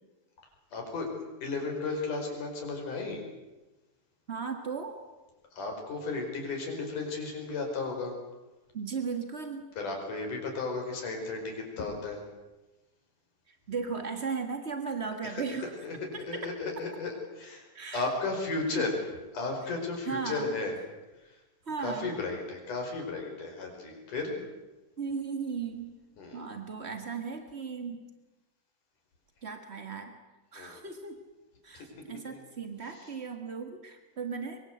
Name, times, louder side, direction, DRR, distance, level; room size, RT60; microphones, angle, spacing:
voice 1, 0.7-1.1 1.4-3.2 5.5-8.1 9.8-12.2 15.2-15.4 15.8-17.7 17.9-19.0 19.3-20.7 21.8-24.3 26.2-26.4 30.6-30.8 31.7-32.4, left 3 dB, 55° left, 2 dB, 6.3 m, -34 dB
voice 2, 4.3-5.0 8.7-9.7 13.5-15.7 16.1-16.5 17.7-18.1 18.7-18.9 20.0-20.6 21.6-22.1 25.0-25.9 26.3-28.1 29.4-30.1 30.5-31.2 31.6-34.6, right 5 dB, 55° right, 5 dB, 0.7 m, -36 dB
24.0 x 23.5 x 8.0 m, 1.1 s
omnidirectional pair, 4.2 m